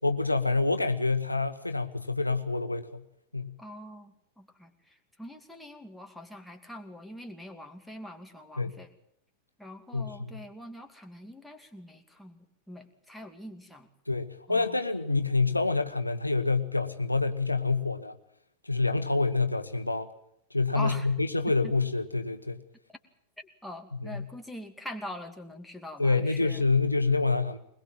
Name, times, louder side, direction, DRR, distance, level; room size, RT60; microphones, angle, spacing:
voice 1, 0.0-3.0 3.3-3.5 8.6-8.8 9.9-10.4 14.1-18.1 18.6-20.1 20.5-22.6 24.0-24.3 26.0-27.6, left 3 dB, 85° left, 10 dB, 1.1 m, -27 dB
voice 2, 3.6-8.9 9.6-12.4 12.7-13.9 14.5-14.7 20.7-21.1 21.6-21.7 23.4-26.6, left 1 dB, ahead, 4 dB, 2.5 m, -43 dB
22.0 x 21.0 x 7.6 m, 0.73 s
figure-of-eight pair, 90°, 0 cm